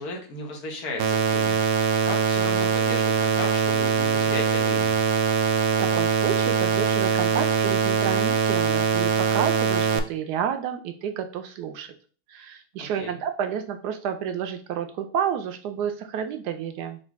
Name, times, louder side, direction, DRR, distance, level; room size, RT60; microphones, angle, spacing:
voice 1, 0.0-1.8 2.0-5.0 12.8-13.2, left 2 dB, 70° left, 1 dB, 1.5 m, -35 dB
sound 1, 1.0-10.0, right 6 dB, 70° right, 1.0 m, -22 dB
voice 2, 5.8-11.9 12.3-17.0, right 8 dB, 90° right, 7 dB, 1.2 m, -30 dB
4.1 x 2.5 x 4.6 m, 0.39 s
omnidirectional pair, 1.7 m